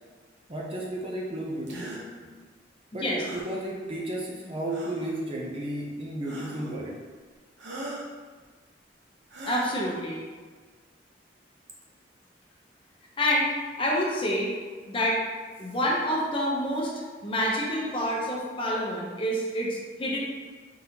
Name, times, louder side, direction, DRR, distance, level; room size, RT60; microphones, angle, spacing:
voice 1, 0.5-2.3 2.9-7.0, right 1 dB, 30° right, -2 dB, 0.6 m, -33 dB
sound 1, 1.7-2.0 3.2-3.5 4.7-5.1 6.2-6.8 7.6-8.1 9.3-10.0, right 1 dB, 70° right, 0.8 m, -40 dB
voice 2, 9.5-10.2 13.2-15.2 15.6-16.9 17.2-20.2, equal, 30° left, -3 dB, 0.7 m, -27 dB
4.0 x 3.8 x 2.8 m, 1.4 s
head